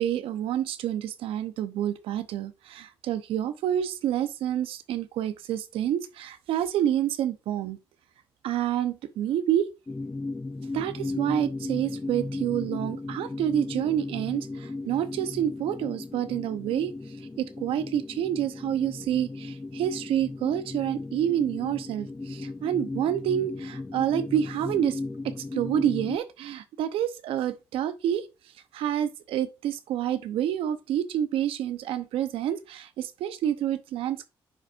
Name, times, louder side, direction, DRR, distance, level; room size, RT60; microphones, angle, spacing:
voice 1, 0.0-7.8 8.4-9.7 10.7-16.9 17.4-25.0 25.2-28.3 28.7-34.3, right 10 dB, 85° right, 0.8 m, -28 dB
sound 1, 9.9-26.2, left 2 dB, 20° left, 0.5 m, -36 dB
9.9 x 5.0 x 2.5 m
supercardioid pair, 60°, 9 cm